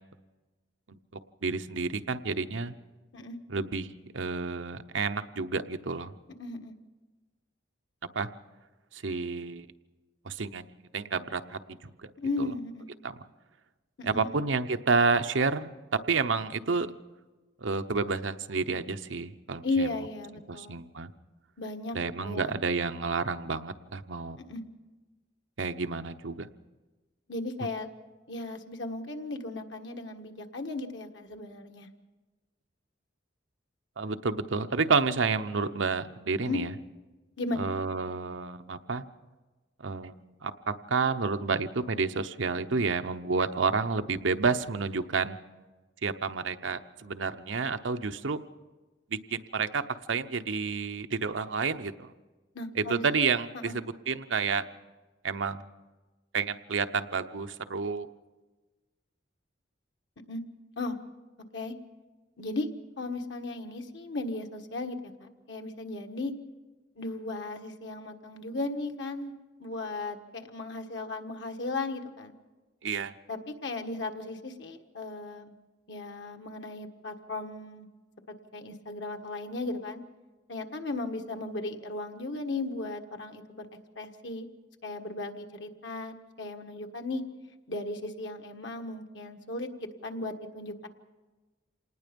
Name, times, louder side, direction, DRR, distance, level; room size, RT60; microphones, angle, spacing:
voice 1, 1.4-2.7 3.5-3.9 4.1-6.1 8.1-8.3 8.9-9.7 10.2-10.7 10.9-12.1 12.4-12.5 13.0-13.2 14.0-16.9 17.6-19.9 20.5-21.1 21.9-24.4 25.6-26.5 34.0-36.7 37.6-39.0 39.8-40.1 40.4-45.4 46.0-48.4 49.1-49.8 50.1-52.1 52.7-54.6 55.2-55.7 56.3-58.1 72.8-73.1, right 4 dB, 90° right, 9 dB, 0.9 m, -30 dB
voice 2, 6.4-6.7 12.2-12.9 14.0-14.3 19.6-20.8 21.6-22.0 22.2-22.5 24.4-24.6 27.3-27.9 28.3-31.9 36.5-36.6 37.4-37.7 52.5-53.0 53.6-53.8 60.3-60.4 60.8-61.0 61.5-61.8 62.4-62.7 63.0-66.3 66.9-69.3 69.6-72.3 73.3-75.5 75.9-77.9 78.5-80.0 80.5-83.6 83.9-84.5 84.8-87.2 87.7-90.9, left 2 dB, 70° left, 5 dB, 1.6 m, -36 dB
26.5 x 19.5 x 5.3 m, 1.2 s
head